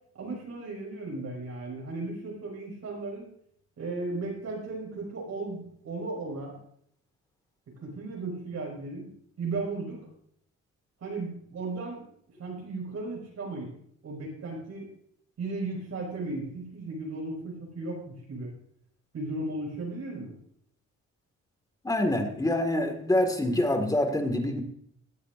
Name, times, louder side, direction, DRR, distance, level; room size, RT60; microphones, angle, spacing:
voice 1, 0.1-3.3 3.8-6.6 7.8-9.1 9.4-10.0 11.0-12.0 12.4-13.7 14.0-14.9 15.4-18.5 19.1-20.3, right 3 dB, 60° right, -2 dB, 5.2 m, -35 dB
voice 2, 21.8-24.6, left 1 dB, 10° left, 6 dB, 1.8 m, -26 dB
17.0 x 10.0 x 2.5 m, 0.67 s
cardioid pair, 90°, 30 cm